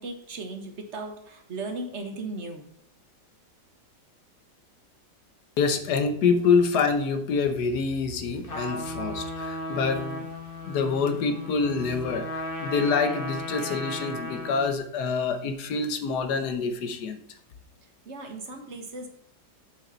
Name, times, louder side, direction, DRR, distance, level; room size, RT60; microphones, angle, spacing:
voice 1, 0.0-2.7 18.0-19.1, right 2 dB, 40° right, 5 dB, 1.4 m, -36 dB
voice 2, 5.6-10.3 10.7-17.2, left 5 dB, 65° left, 8 dB, 1.4 m, -26 dB
Trumpet, 8.4-14.7, left 1 dB, 35° left, 1.3 m, -35 dB
7.2 x 5.4 x 5.7 m, 0.70 s
omnidirectional pair, 2.0 m